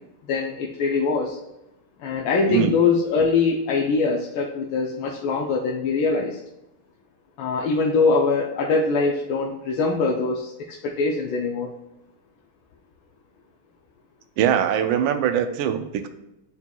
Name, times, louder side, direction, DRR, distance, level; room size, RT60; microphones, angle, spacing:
voice 1, 0.3-1.4 2.0-6.4 7.4-11.7, left 4 dB, 75° left, -1 dB, 1.4 m, -23 dB
voice 2, 2.5-2.8 14.4-16.1, right 9 dB, 75° right, 9 dB, 1.3 m, -22 dB
9.4 x 4.4 x 2.3 m, 0.90 s
omnidirectional pair, 2.3 m